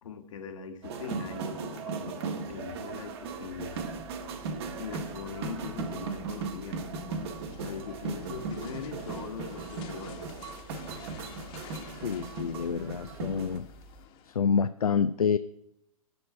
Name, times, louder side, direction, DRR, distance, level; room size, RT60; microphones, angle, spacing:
voice 1, 0.0-3.9 4.8-7.2 7.6-10.3, left 6 dB, 60° left, 1.5 m, -41 dB
sound 1, 0.8-13.6, right 4 dB, 45° right, 1.5 m, -37 dB
sound 2, 2.5-14.1, right 1 dB, 15° right, 1.4 m, -53 dB
sound 3, 7.2-14.4, left 9 dB, 30° left, 1.2 m, -52 dB
voice 2, 12.0-13.7 14.3-15.4, left 6 dB, 80° left, 0.5 m, -27 dB
13.0 x 4.5 x 8.4 m
figure-of-eight pair, 120°, 19 cm